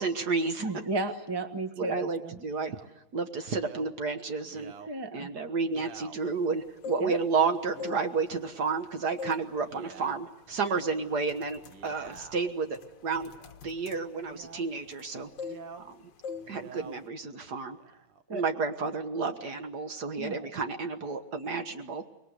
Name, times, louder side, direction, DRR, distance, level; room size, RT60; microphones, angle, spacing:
voice 1, 0.0-0.7 1.8-2.8 3.1-4.7 5.1-13.3 13.6-15.3 15.8-16.0 16.5-17.8 18.3-22.0, right 4 dB, 50° right, 7 dB, 1.7 m, -31 dB
voice 2, 0.6-2.4 4.9-5.3 7.0-7.2 18.3-18.4 20.2-20.5, right 2 dB, 20° right, 8 dB, 0.8 m, -34 dB
Male speech man speaking, 2.5-2.9 3.5-3.9 4.4-4.9 5.6-6.2 6.9-7.2 7.7-8.0 8.5-9.1 9.6-10.2 11.6-12.5 13.2-13.6 14.2-14.7 15.4-15.9 16.3-17.0 17.7-18.2, right 6 dB, 80° right, 2.1 m, -49 dB
sound 1, 6.6-7.4 7.7-8.8 9.2-9.5 9.9-10.1 10.7-10.9 11.2-15.1 15.4-15.9 16.2-16.5 16.8-17.1, left 6 dB, 60° left, 1.6 m, -42 dB
25.0 x 21.5 x 8.1 m, 0.94 s
omnidirectional pair, 2.4 m